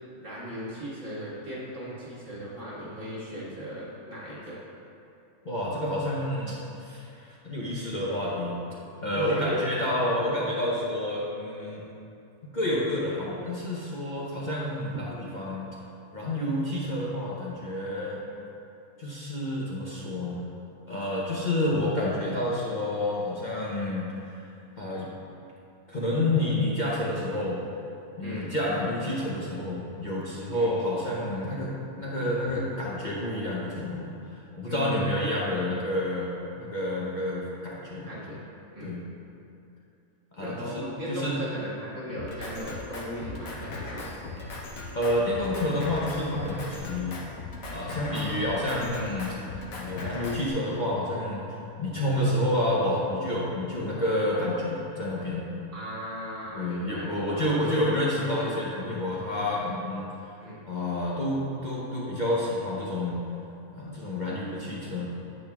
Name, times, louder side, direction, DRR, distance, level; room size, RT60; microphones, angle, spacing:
voice 1, 0.2-4.6 9.1-9.7 28.2-28.6 30.5-30.7 34.7-35.2 38.0-38.9 40.4-44.1 48.1-48.6 55.7-57.6 60.4-60.6, equal, 60° right, -8 dB, 2.1 m, -37 dB
voice 2, 5.4-8.6 9.0-11.8 12.5-15.7 16.1-18.2 19.0-20.5 20.9-24.4 24.8-25.1 25.9-27.6 28.2-34.1 34.5-38.1 38.8-39.0 40.3-41.4 44.9-47.2 47.7-51.4 51.8-55.5 56.5-60.1 60.7-63.2 63.7-65.1, left 1 dB, 40° left, -6 dB, 0.9 m, -29 dB
Drum kit, 42.2-50.5, left 2 dB, 70° left, 1.3 m, -38 dB
8.8 x 8.5 x 2.4 m, 2.7 s
omnidirectional pair, 1.5 m